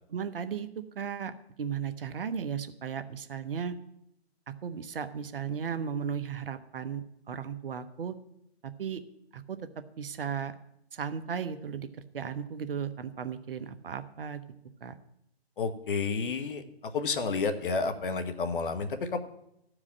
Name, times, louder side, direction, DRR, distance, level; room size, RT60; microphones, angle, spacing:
voice 1, 0.1-0.7 0.9-1.3 1.6-3.8 4.6-8.2 8.6-9.0 9.3-9.6 10.0-10.5 10.9-11.9 12.1-14.4 14.8-15.0, right 7 dB, 55° right, 10 dB, 0.9 m, -35 dB
voice 2, 15.6-16.6 16.9-19.2, left 4 dB, 50° left, 9 dB, 1.1 m, -30 dB
13.5 x 4.9 x 7.4 m, 0.79 s
hypercardioid pair, 145°, 33 cm